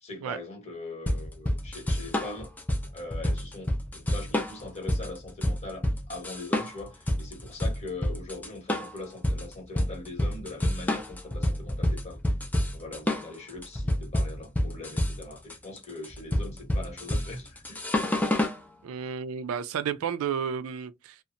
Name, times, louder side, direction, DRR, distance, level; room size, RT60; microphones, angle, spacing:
voice 1, 0.0-2.5 2.9-12.2 12.7-17.9, left 2 dB, 30° left, 1.0 m, -41 dB
sound 1, 1.1-18.6, left 1 dB, 10° left, 0.4 m, -28 dB
voice 2, 18.8-21.2, right 7 dB, 75° right, 0.3 m, -32 dB
2.7 x 2.0 x 2.5 m
head